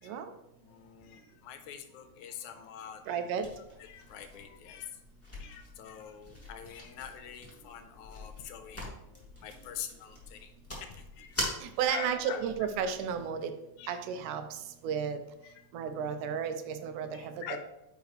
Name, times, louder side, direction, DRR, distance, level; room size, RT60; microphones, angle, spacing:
voice 1, 0.0-3.3 3.8-5.0 5.4-11.4 11.9-12.4 13.8-14.0 15.4-15.6 17.1-17.6, left 8 dB, 80° left, 8 dB, 2.0 m, -45 dB
voice 2, 3.1-3.5 11.6-13.5 13.9-14.4 14.8-15.2 15.7-17.6, right 7 dB, 90° right, 8 dB, 2.2 m, -33 dB
sound 1, 3.4-13.3, equal, 5° left, 1.2 m, -44 dB
9.5 x 4.9 x 3.0 m, 0.86 s
omnidirectional pair, 3.5 m